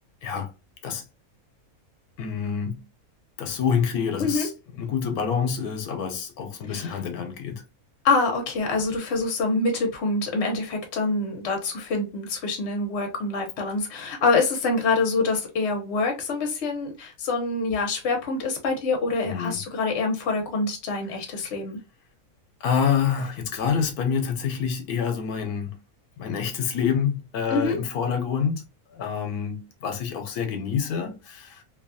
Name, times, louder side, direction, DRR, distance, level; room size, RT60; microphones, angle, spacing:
voice 1, 2.2-2.9 3.4-7.6 19.3-19.6 22.6-25.8 26.2-28.6 28.9-31.6, left 7 dB, 90° left, 1.1 m, -27 dB
voice 2, 8.0-21.8 27.5-27.8, left 3 dB, 55° left, 1.0 m, -25 dB
2.8 x 2.3 x 2.5 m
omnidirectional pair, 1.5 m